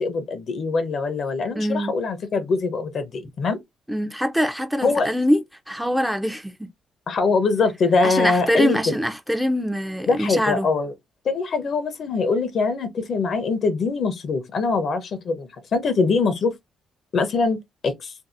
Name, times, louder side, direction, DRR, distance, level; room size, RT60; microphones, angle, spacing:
voice 1, 0.0-3.6 4.8-5.1 7.1-8.8 10.1-10.9 11.2-16.5 17.1-17.6 17.8-18.1, left 4 dB, 55° left, 0.7 m, -23 dB
voice 2, 1.6-1.9 3.9-6.7 8.0-10.7, equal, 5° right, 0.5 m, -24 dB
2.6 x 2.5 x 2.5 m
cardioid pair, 90°, 0 cm